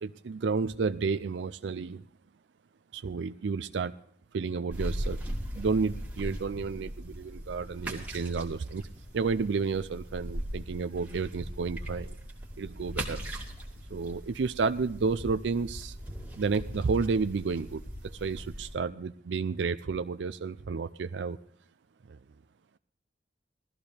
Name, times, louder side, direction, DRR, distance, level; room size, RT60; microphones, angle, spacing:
voice 1, 0.0-2.0 2.9-4.0 4.3-8.8 9.1-12.2 12.6-13.2 13.9-16.0 16.4-21.4 22.1-22.2, right 4 dB, 80° right, 11 dB, 0.4 m, -31 dB
sound 1, 4.7-18.8, equal, 10° right, 2.3 m, -39 dB
19.5 x 14.0 x 3.4 m, 0.64 s
head